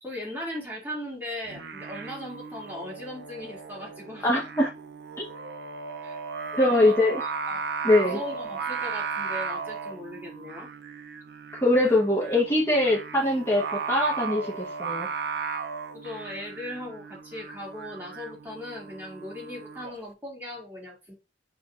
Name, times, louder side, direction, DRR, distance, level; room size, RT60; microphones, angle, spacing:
voice 1, 0.0-4.3 6.0-6.2 6.6-7.7 7.9-10.7 15.9-21.1, left 1 dB, 10° right, -5 dB, 2.4 m, -38 dB
Singing, 1.5-19.9, right 5 dB, 60° right, 0.5 m, -36 dB
voice 2, 4.2-4.7 5.2-5.3 6.6-7.2 7.8-8.2 11.5-15.1, left 1 dB, 15° left, -4 dB, 1.2 m, -22 dB
5.6 x 3.6 x 2.5 m, 0.27 s
head